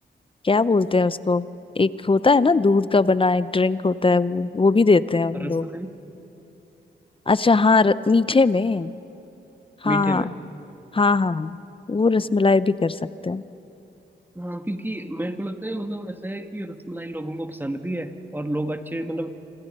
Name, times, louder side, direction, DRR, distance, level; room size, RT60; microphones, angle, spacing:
voice 1, 0.4-1.5 1.8-5.7 7.3-8.9 9.8-10.3 10.9-11.6 11.9-13.4, left 3 dB, 30° left, 16 dB, 0.7 m, -20 dB
voice 2, 5.4-5.9 9.8-10.3 14.3-19.4, right 1 dB, 10° right, 7 dB, 1.6 m, -30 dB
26.5 x 26.0 x 5.5 m, 2.9 s
cardioid pair, 70°, 19 cm